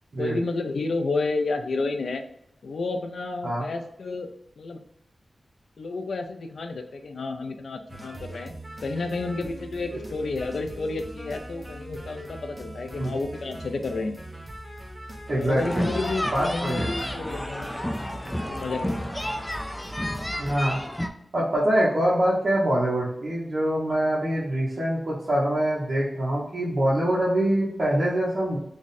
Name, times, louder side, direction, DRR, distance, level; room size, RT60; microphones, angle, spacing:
voice 1, 0.2-2.2 2.6-4.3 4.6-4.8 5.8-8.5 8.8-14.2 15.3-17.7 18.2-19.1, left 3 dB, 85° left, 5 dB, 0.4 m, -31 dB
sound 1, 7.9-20.5, right 1 dB, 20° right, 0.7 m, -41 dB
voice 2, 15.3-15.8 16.3-16.9 20.4-20.8 21.3-28.6, right 1 dB, 60° right, -7 dB, 0.9 m, -24 dB
sound 2, 15.6-21.1, equal, 10° left, 0.3 m, -31 dB
3.5 x 2.1 x 4.0 m, 0.76 s
wide cardioid pair, 120°, 0 cm